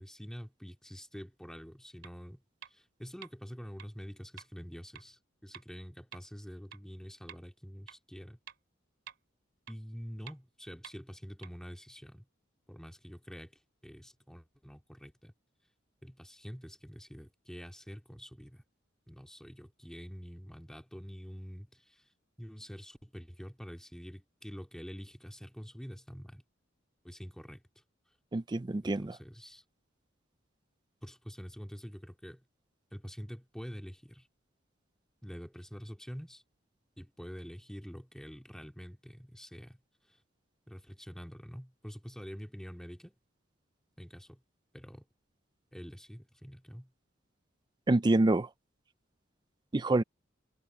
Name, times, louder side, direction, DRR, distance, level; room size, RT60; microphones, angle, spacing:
voice 1, 0.0-2.4 2.7-8.4 9.7-12.2 12.7-13.5 13.8-15.3 16.0-18.6 19.1-22.0 22.4-26.4 27.0-27.6 28.8-29.6 31.0-32.4 32.9-34.3 35.2-36.4 37.0-39.8 40.1-40.2 40.7-43.2 44.0-44.4 44.7-45.0 45.7-46.9, equal, 5° left, 2.3 m, -46 dB
sound 1, 2.0-2.1 2.6-2.7 3.2-3.3 3.8-3.9 4.4-4.5 4.9-5.0 5.5-5.6 6.1-6.2 6.7-6.8 7.3-7.4 7.9-8.0 8.5-8.6 9.1-9.2 9.7-9.8 10.3-10.4 10.8-10.9 11.4-11.5, right 9 dB, 65° right, 2.7 m, -48 dB
voice 2, 28.3-29.1 47.9-48.5 49.7-50.0, right 2 dB, 20° right, 0.4 m, -26 dB
head